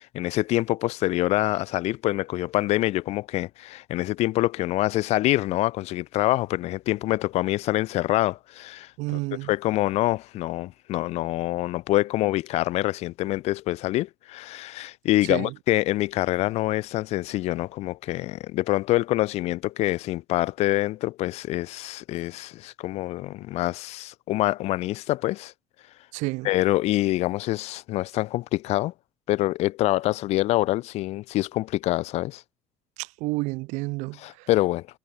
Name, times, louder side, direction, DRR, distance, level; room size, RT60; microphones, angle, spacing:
voice 1, 0.0-8.9 9.5-25.5 26.4-28.9 29.3-32.4 34.2-34.9, left 17 dB, 60° left, 0.4 m, -25 dB
voice 2, 9.0-9.5 15.3-15.5 26.1-26.5 33.0-34.5, right 24 dB, 75° right, 0.5 m, -30 dB
supercardioid pair, 95°, 12 cm